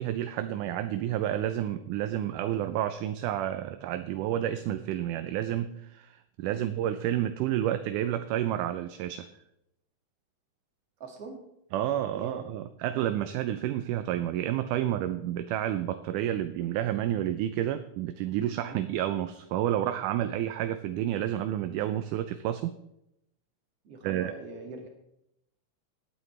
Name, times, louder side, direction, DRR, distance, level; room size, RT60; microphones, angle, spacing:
voice 1, 0.0-9.3 11.7-22.8 24.0-24.3, right 12 dB, 80° right, 10 dB, 2.0 m, -30 dB
voice 2, 11.0-11.4 12.1-12.4 18.6-18.8 23.8-24.9, right 3 dB, 50° right, 1 dB, 2.8 m, -42 dB
18.5 x 8.7 x 3.3 m, 0.82 s
omnidirectional pair, 3.8 m